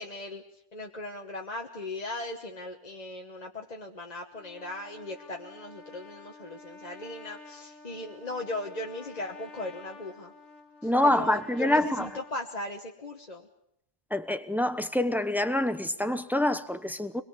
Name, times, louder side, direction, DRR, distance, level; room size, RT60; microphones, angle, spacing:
voice 1, 0.0-10.3 10.8-13.4, left 2 dB, 35° left, 1.3 m, -38 dB
Trumpet, 4.3-12.3, left 3 dB, 85° left, 2.0 m, -50 dB
voice 2, 10.8-12.1 14.1-17.2, left 1 dB, ahead, 0.8 m, -26 dB
25.5 x 21.5 x 7.2 m
omnidirectional pair, 1.2 m